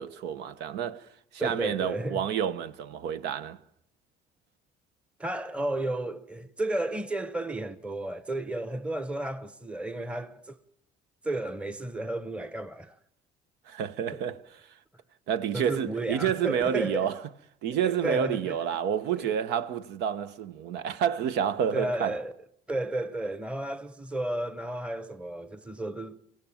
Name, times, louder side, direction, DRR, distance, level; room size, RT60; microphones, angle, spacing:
voice 1, 0.0-3.6 13.7-14.4 15.3-17.2 17.6-22.2, right 8 dB, 85° right, 1.0 m, -29 dB
voice 2, 1.4-2.2 5.2-10.6 11.2-13.0 14.1-14.2 15.5-17.1 17.8-18.6 19.2-19.3 21.7-22.3 22.7-26.2, right 1 dB, 5° right, 0.9 m, -33 dB
24.5 x 16.5 x 7.3 m
cardioid pair, 110°, 17 cm